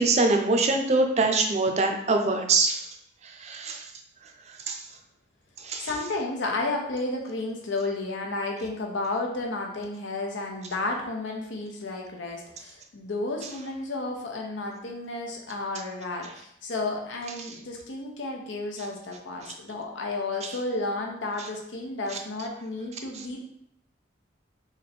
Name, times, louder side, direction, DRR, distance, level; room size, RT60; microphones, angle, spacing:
voice 1, 0.0-2.8 3.4-3.8 4.7-4.8 5.6-5.9, right 3 dB, 35° right, 4 dB, 0.4 m, -23 dB
voice 2, 5.8-23.5, left 2 dB, 90° left, 1 dB, 0.7 m, -32 dB
3.1 x 2.6 x 4.1 m, 0.72 s
head